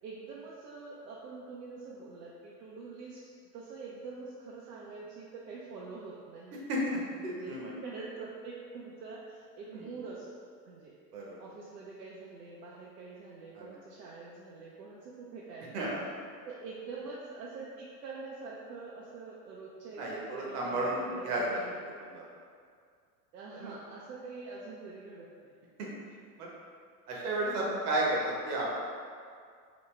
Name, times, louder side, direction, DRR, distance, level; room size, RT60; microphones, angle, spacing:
voice 1, 0.0-3.2 3.5-6.6 7.2-7.6 7.8-10.9 11.4-16.0 16.4-21.8 23.3-25.6, right 4 dB, 80° right, -5 dB, 0.6 m, -45 dB
voice 2, 6.7-7.7 9.7-9.9 11.1-11.4 13.5-13.7 15.7-16.1 20.0-21.4 22.0-22.2 23.5-23.7 25.8-25.9 26.4-26.5 27.1-28.8, right 1 dB, 65° right, -4 dB, 1.1 m, -33 dB
4.0 x 2.3 x 3.2 m, 2.2 s
hypercardioid pair, 100°, 49 cm